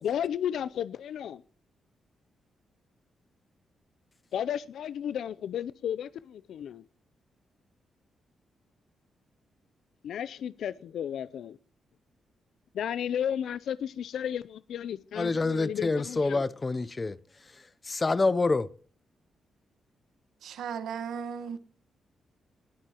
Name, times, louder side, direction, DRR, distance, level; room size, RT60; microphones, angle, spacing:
voice 1, 0.0-1.4 4.3-6.8 10.0-11.6 12.7-16.4, left 9 dB, 75° left, 0.5 m, -33 dB
voice 2, 15.2-17.2 17.9-18.7, left 3 dB, 25° left, 0.7 m, -27 dB
voice 3, 20.4-21.6, right 7 dB, 85° right, 1.4 m, -36 dB
20.0 x 11.5 x 3.0 m
cardioid pair, 125°, 0 cm